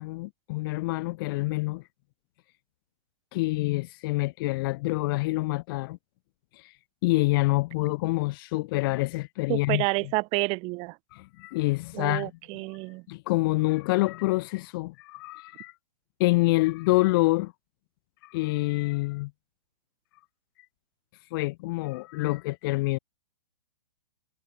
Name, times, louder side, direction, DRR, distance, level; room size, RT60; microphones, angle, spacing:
voice 1, 0.0-1.8 3.3-6.0 6.6-6.7 7.0-9.8 11.1-12.3 13.1-15.7 16.2-17.5 18.2-19.3 21.3-23.0, left 22 dB, 35° left, 0.6 m, -26 dB
voice 2, 9.5-11.0 11.9-13.0, right 27 dB, 25° right, 0.9 m, -29 dB
hypercardioid pair, 135°, 21 cm